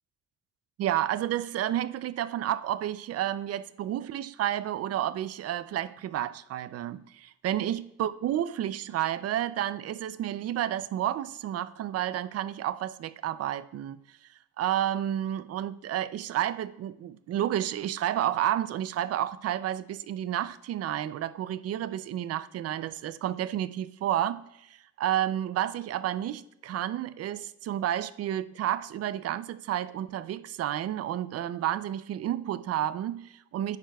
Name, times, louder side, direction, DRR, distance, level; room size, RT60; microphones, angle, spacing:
voice 1, 0.8-14.0 14.6-24.7 25.0-33.8, right 11 dB, 55° right, 0.4 m, -31 dB
10.5 x 8.7 x 2.3 m
cardioid pair, 115°, 29 cm